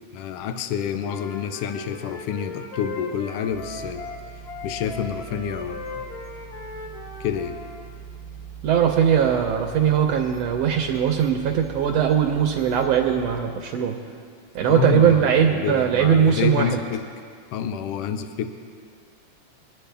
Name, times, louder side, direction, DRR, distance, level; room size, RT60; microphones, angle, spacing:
voice 1, 0.1-4.1 4.6-6.0 7.2-7.6 14.6-15.2 15.5-17.1 17.5-18.5, left 8 dB, 90° left, 8 dB, 1.3 m, -28 dB
Wind instrument woodwind instrument, 1.0-7.9, left 3 dB, 70° left, 2.5 m, -38 dB
sound 1, 3.5-13.4, right 7 dB, 25° left, 0.6 m, -42 dB
voice 2, 8.6-14.0 14.5-16.8, right 8 dB, 75° right, 3 dB, 1.6 m, -20 dB
23.0 x 9.9 x 3.4 m, 2.1 s
omnidirectional pair, 3.4 m